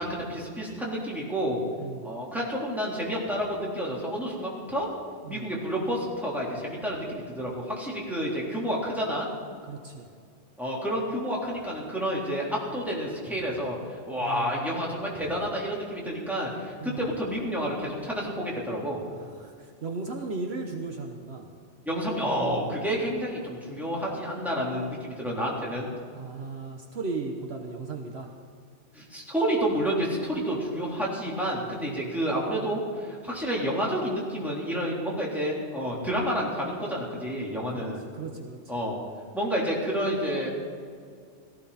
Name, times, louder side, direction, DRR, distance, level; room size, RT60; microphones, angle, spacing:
voice 1, 0.0-1.6 2.0-4.9 5.3-9.3 10.6-19.0 21.8-25.9 28.9-38.0 38.7-39.0 39.3-40.5, equal, ahead, -5 dB, 3.6 m, -29 dB
voice 2, 1.8-2.2 5.2-5.5 9.7-10.1 14.2-14.9 16.8-17.1 19.1-21.5 26.1-28.3 31.9-32.1 35.9-36.1 37.7-37.9 38.1-38.6, right 3 dB, 60° right, 2 dB, 1.3 m, -36 dB
18.0 x 14.5 x 4.2 m, 2.1 s
omnidirectional pair, 1.2 m